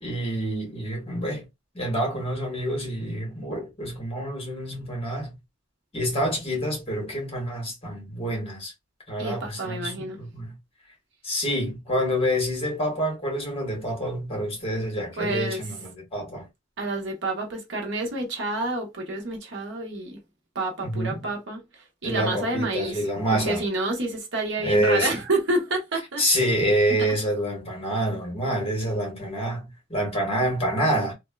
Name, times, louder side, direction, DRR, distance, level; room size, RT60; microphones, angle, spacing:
voice 1, 0.0-1.5 1.7-5.4 5.9-8.7 9.1-10.6 11.2-16.5 20.8-21.2 22.0-23.6 24.6-25.2 26.2-31.1, equal, 30° left, 1.6 m, -27 dB
voice 2, 9.2-10.2 15.2-15.6 16.8-20.2 20.5-23.0 23.3-26.2, right 2 dB, 65° right, 1.1 m, -29 dB
3.2 x 2.6 x 2.3 m
head